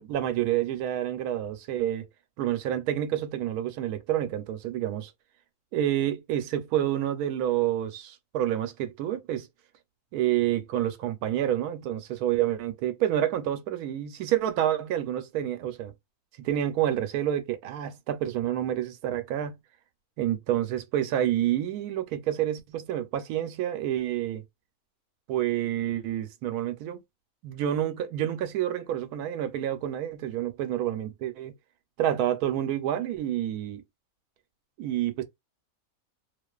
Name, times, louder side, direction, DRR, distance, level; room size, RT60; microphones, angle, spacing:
voice 1, 0.0-2.1 2.4-5.1 5.7-9.5 10.1-15.9 16.4-19.6 20.2-24.4 25.3-27.0 27.4-31.5 32.0-33.8 34.8-35.2, right 11 dB, 85° right, 1.1 m, -28 dB
2.4 x 2.4 x 2.3 m
omnidirectional pair, 1.6 m